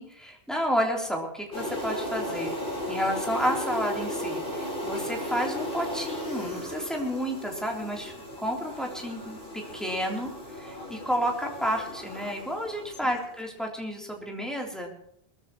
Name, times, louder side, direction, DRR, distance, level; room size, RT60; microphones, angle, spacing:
voice 1, 0.0-2.5 2.9-15.0, equal, ahead, -1 dB, 3.5 m, -31 dB
sound 1, 1.5-13.3, left 1 dB, 55° left, 4.8 m, -35 dB
22.5 x 14.0 x 3.1 m, 0.71 s
omnidirectional pair, 1.1 m